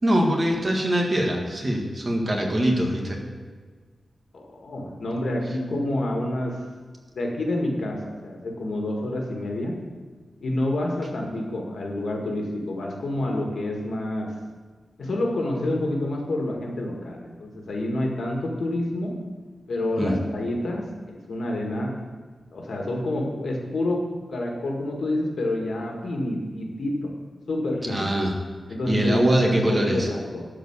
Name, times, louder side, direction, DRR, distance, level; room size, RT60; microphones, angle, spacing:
voice 1, 0.0-3.2 20.0-20.2 27.9-28.3 28.9-30.1, equal, 25° right, 0 dB, 1.7 m, -23 dB
voice 2, 4.3-6.6 7.1-9.7 10.4-14.3 15.0-19.2 19.7-22.0 22.5-24.0 24.3-27.1 27.5-28.1 28.7-30.5, left 1 dB, 65° left, 0 dB, 1.8 m, -28 dB
12.5 x 4.8 x 8.0 m, 1.5 s
wide cardioid pair, 170°, 0 cm